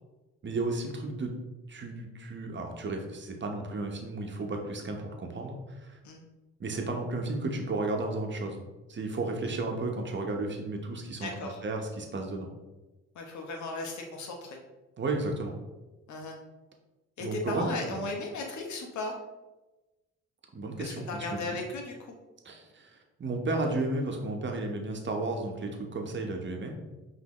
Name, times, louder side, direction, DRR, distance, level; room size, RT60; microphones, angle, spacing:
voice 1, 0.4-1.3 1.7-6.0 6.6-8.6 8.9-11.3 11.6-12.5 15.0-15.5 17.2-18.1 20.5-21.4 22.4-26.8, right 2 dB, 40° right, 2 dB, 0.9 m, -33 dB
voice 2, 11.2-11.6 13.1-14.6 16.1-16.4 17.2-19.1 20.8-22.0, left 2 dB, 70° left, 1 dB, 1.0 m, -36 dB
5.3 x 2.8 x 3.0 m, 1.1 s
supercardioid pair, 60°, 30 cm